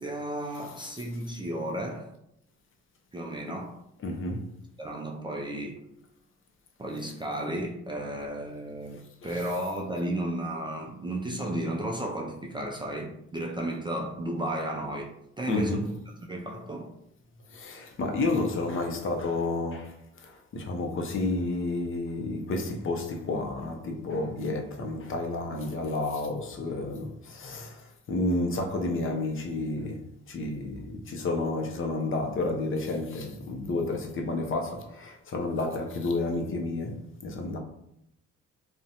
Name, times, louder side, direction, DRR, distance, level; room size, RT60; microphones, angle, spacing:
voice 1, 0.0-2.1 3.1-3.8 4.8-5.8 6.8-16.0 16.3-17.0, right 1 dB, 15° right, 0.3 m, -33 dB
voice 2, 4.0-4.5 9.2-9.4 15.5-15.9 17.5-37.6, left 2 dB, 45° left, 0.5 m, -31 dB
2.5 x 2.1 x 2.7 m
cardioid pair, 90°, 30 cm